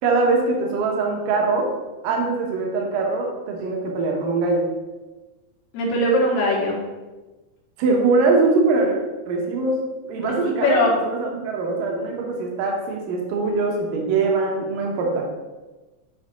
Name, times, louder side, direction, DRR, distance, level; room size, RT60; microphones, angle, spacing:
voice 1, 0.0-1.7 2.0-4.7 7.8-9.0 9.3-9.8 10.0-10.8 11.0-15.3, right 3 dB, 65° right, 0 dB, 2.7 m, -22 dB
voice 2, 5.7-6.8 10.5-10.9, left 1 dB, 85° left, -3 dB, 3.8 m, -20 dB
10.5 x 5.0 x 3.7 m, 1.2 s
omnidirectional pair, 4.4 m